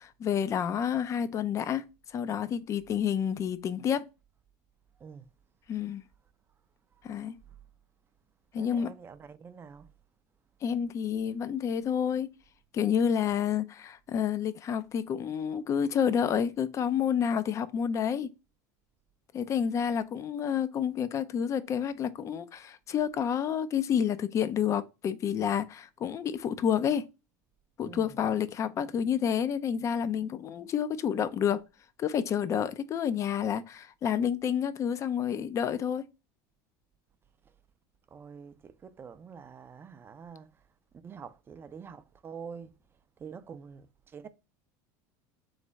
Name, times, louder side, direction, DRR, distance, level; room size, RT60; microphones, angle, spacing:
voice 1, 0.0-4.0 5.7-6.0 7.0-7.4 8.5-8.9 10.6-12.3 12.7-18.3 19.3-27.0 27.8-31.6 32.0-36.0, left 8 dB, 35° left, 0.4 m, -29 dB
voice 2, 8.5-9.9 27.8-28.2 38.1-40.5 41.0-42.7 43.2-44.3, right 6 dB, 25° right, 0.4 m, -46 dB
3.5 x 3.2 x 4.0 m
supercardioid pair, 120°, 9 cm